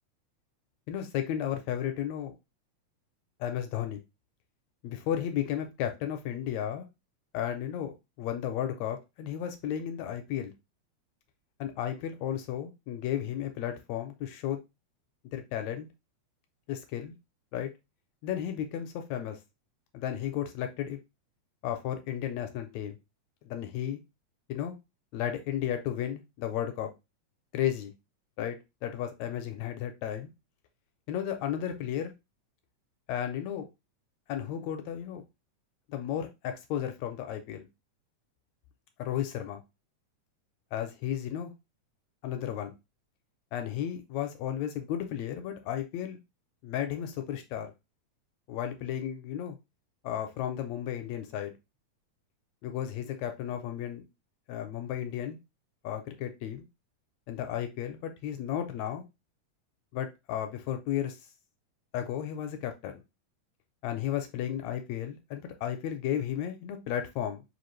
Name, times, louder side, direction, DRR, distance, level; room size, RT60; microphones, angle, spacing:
voice 1, 0.9-2.4 3.4-4.0 4.8-6.9 7.3-10.5 11.6-14.6 15.3-15.9 16.7-17.1 17.5-17.7 18.2-19.4 19.9-21.0 21.6-23.0 23.4-24.0 24.5-24.7 25.1-26.9 27.5-27.9 28.4-30.3 31.1-32.1 33.1-33.6 34.3-35.2 35.9-37.7 39.0-39.6 40.7-41.5 42.2-42.7 43.5-46.2 46.6-47.7 48.5-49.6 50.0-51.5 52.6-54.0 54.5-55.4 55.8-56.6 57.3-59.0 59.9-61.2 61.9-63.0 63.8-67.4, left 10 dB, 80° left, 6 dB, 1.7 m, -33 dB
5.0 x 2.4 x 3.0 m, 0.24 s
omnidirectional pair, 3.4 m